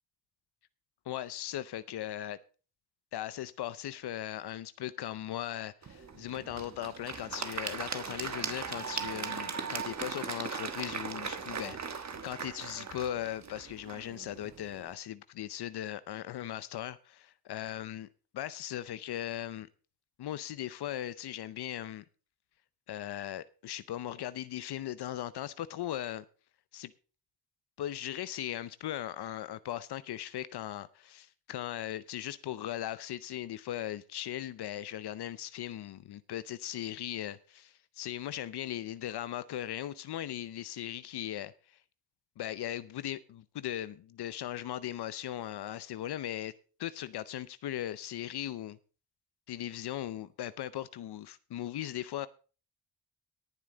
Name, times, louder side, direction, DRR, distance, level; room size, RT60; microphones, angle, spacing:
voice 1, 1.1-2.4 3.1-18.1 18.3-19.7 20.2-22.0 22.9-26.2 26.7-26.9 27.8-41.8 42.4-46.5 46.8-48.8 49.5-52.3, left 12 dB, 75° left, 0.7 m, -38 dB
Applause / Crowd, 5.8-14.9, right 6 dB, 45° right, 1.4 m, -39 dB
18.0 x 7.5 x 3.9 m
cardioid pair, 75°, 39 cm